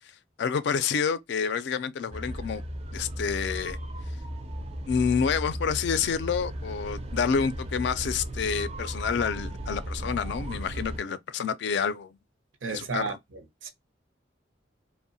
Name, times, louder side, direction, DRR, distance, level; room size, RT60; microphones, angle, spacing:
voice 1, 0.4-2.6 2.9-3.8 4.9-12.2 12.7-13.2, left 6 dB, 60° left, 0.3 m, -28 dB
sound 1, 2.1-11.0, equal, 35° right, 0.4 m, -35 dB
voice 2, 12.6-13.1 13.6-13.7, right 4 dB, 85° right, 0.6 m, -31 dB
2.8 x 2.0 x 2.6 m
head